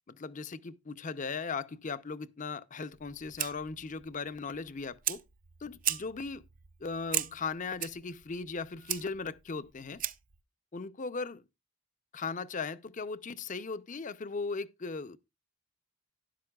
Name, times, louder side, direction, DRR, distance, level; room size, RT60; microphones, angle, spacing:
voice 1, 0.1-5.2 5.6-6.4 6.8-10.0 10.7-11.4 12.1-15.2, left 4 dB, 40° left, 0.6 m, -38 dB
Fire, 2.9-10.4, right 12 dB, 40° right, 0.5 m, -38 dB
12.5 x 10.5 x 2.3 m
head